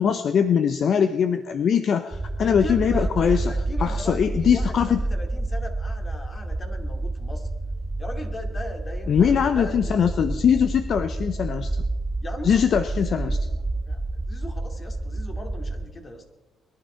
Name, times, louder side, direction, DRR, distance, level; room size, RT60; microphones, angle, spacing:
voice 1, 0.0-3.5 3.8-5.0 9.1-11.8 12.4-13.4, left 7 dB, 60° left, 10 dB, 0.7 m, -21 dB
sound 1, 2.1-15.8, right 2 dB, 20° right, 1.1 m, -29 dB
voice 2, 2.4-7.5 8.0-10.2 12.2-16.2, left 1 dB, 35° left, 4 dB, 2.7 m, -39 dB
22.0 x 11.5 x 4.5 m, 1.1 s
cardioid pair, 90°, 0 cm